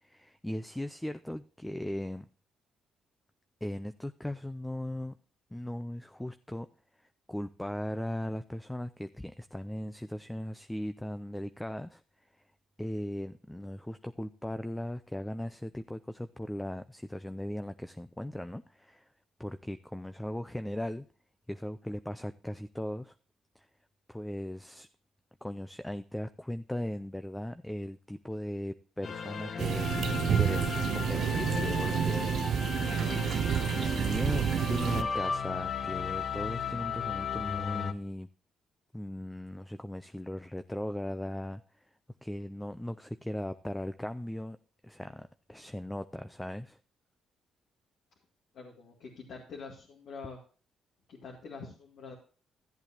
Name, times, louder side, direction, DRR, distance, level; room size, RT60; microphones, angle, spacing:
voice 1, 0.0-2.3 3.6-5.2 5.5-6.7 7.3-12.0 12.8-19.1 19.4-21.1 21.5-23.1 23.6-23.7 24.1-24.9 25.4-29.9 30.3-32.4 33.8-38.3 38.9-41.6 42.2-44.6 44.8-46.8, left 1 dB, 5° left, 10 dB, 0.5 m, -38 dB
sound 1, 29.0-37.9, left 6 dB, 55° left, 0.9 m, -35 dB
sound 2, 29.6-35.0, right 9 dB, 65° right, 0.5 m, -29 dB
voice 2, 48.5-50.4 51.1-52.1, left 4 dB, 70° left, -2 dB, 2.2 m, -45 dB
14.0 x 8.1 x 2.8 m, 0.38 s
cardioid pair, 90°, 0 cm